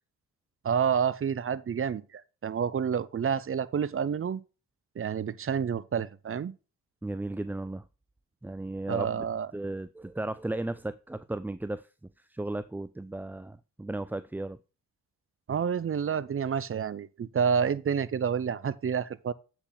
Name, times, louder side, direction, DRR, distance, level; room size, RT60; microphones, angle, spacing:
voice 1, 0.6-4.4 5.0-6.5 8.9-9.5 15.5-19.3, right 7 dB, 35° right, 0.7 m, -29 dB
voice 2, 7.0-7.8 8.4-9.3 9.5-11.9 12.2-14.6, right 2 dB, 5° right, 0.4 m, -35 dB
7.9 x 6.0 x 4.0 m
hypercardioid pair, 45°, 38 cm